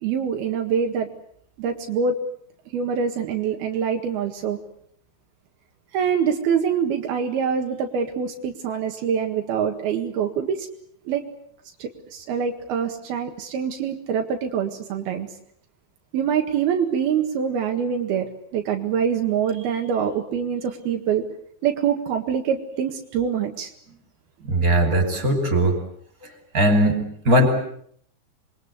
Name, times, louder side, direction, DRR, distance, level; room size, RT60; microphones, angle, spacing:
voice 1, 0.0-1.1 1.6-2.2 2.7-4.6 5.9-10.7 11.1-11.2 11.8-15.3 16.1-21.3 21.6-23.7, right 7 dB, 80° right, 3 dB, 3.7 m, -25 dB
voice 2, 24.5-25.8 26.5-27.5, right 1 dB, 20° right, 6 dB, 5.8 m, -19 dB
27.0 x 22.5 x 8.2 m, 0.66 s
omnidirectional pair, 4.4 m